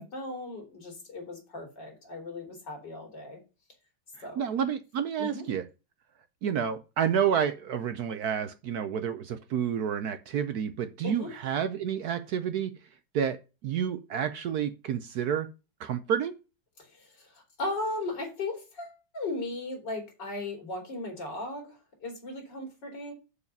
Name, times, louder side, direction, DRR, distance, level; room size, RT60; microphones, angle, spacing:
voice 1, 0.0-3.4 4.2-4.4 5.2-5.4 11.0-11.3 16.8-23.1, left 2 dB, 65° left, 2 dB, 3.9 m, -37 dB
voice 2, 4.2-5.6 6.4-12.7 13.1-13.4 13.6-15.5 15.8-16.3, right 8 dB, 65° right, 10 dB, 1.1 m, -29 dB
7.2 x 6.7 x 5.4 m, 0.30 s
omnidirectional pair, 2.0 m